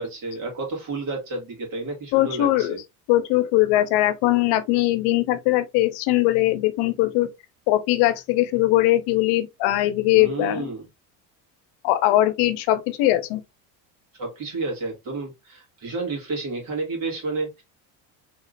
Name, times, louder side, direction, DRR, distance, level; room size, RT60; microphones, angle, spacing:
voice 1, 0.0-2.8 10.1-10.9 14.1-17.6, right 3 dB, 55° right, 2.1 m, -31 dB
voice 2, 2.1-2.8 3.1-7.3 7.7-10.7 11.8-13.4, left 15 dB, 80° left, 0.7 m, -20 dB
3.6 x 2.9 x 2.5 m
cardioid pair, 135°, 39 cm